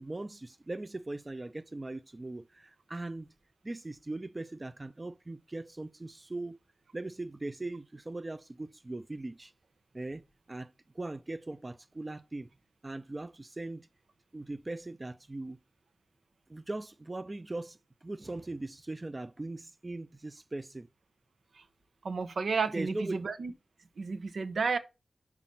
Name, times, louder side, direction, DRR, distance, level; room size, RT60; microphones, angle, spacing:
voice 1, 0.0-3.3 3.6-6.6 6.9-9.5 9.9-12.5 12.8-13.9 14.3-15.6 16.5-20.9 22.7-23.2, right 2 dB, 25° right, 0.4 m, -40 dB
voice 2, 22.0-23.5 24.0-24.8, right 4 dB, 90° right, 1.0 m, -32 dB
5.9 x 5.0 x 5.5 m
wide cardioid pair, 115°, 0 cm